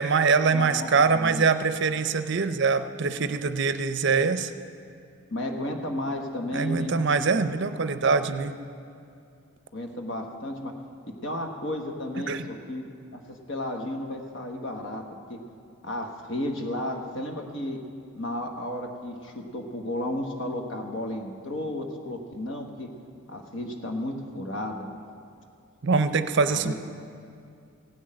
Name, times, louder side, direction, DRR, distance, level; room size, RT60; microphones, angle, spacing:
voice 1, 0.0-4.5 6.5-8.6 12.3-12.5 25.8-26.7, right 4 dB, 55° right, 11 dB, 0.6 m, -23 dB
voice 2, 0.5-1.4 5.3-6.9 9.7-10.7 11.2-12.8 13.1-15.0 15.3-15.4 15.8-17.8 18.2-22.9 23.3-25.0 26.5-26.7, left 1 dB, 60° left, 3 dB, 1.3 m, -33 dB
16.5 x 6.4 x 8.8 m, 2.5 s
head